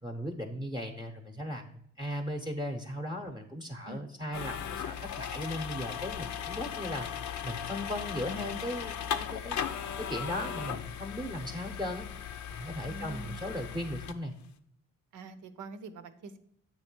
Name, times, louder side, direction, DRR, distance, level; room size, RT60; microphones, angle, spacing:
voice 1, 0.0-7.1 7.4-12.1 12.5-14.3, equal, 15° right, 4 dB, 0.9 m, -37 dB
sound 1, 4.3-14.1, left 8 dB, 70° left, 0.7 m, -37 dB
voice 2, 12.8-13.5 15.1-16.4, right 3 dB, 75° right, 10 dB, 0.8 m, -45 dB
8.3 x 3.2 x 6.1 m, 0.72 s
cardioid pair, 90°, 30 cm